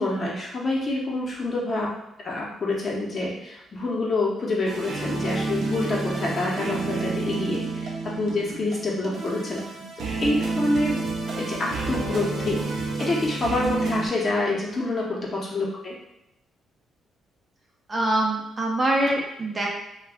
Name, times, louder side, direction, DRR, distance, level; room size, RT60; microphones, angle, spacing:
voice 1, 0.0-1.9 2.2-9.6 10.2-11.0 11.4-16.0, left 2 dB, 40° left, -3 dB, 0.9 m, -27 dB
sound 1, 4.7-14.1, right 3 dB, 60° right, 0.7 m, -29 dB
voice 2, 17.9-19.7, right 1 dB, 30° right, -2 dB, 0.6 m, -25 dB
2.3 x 2.2 x 3.5 m, 0.90 s
cardioid pair, 90°, 0 cm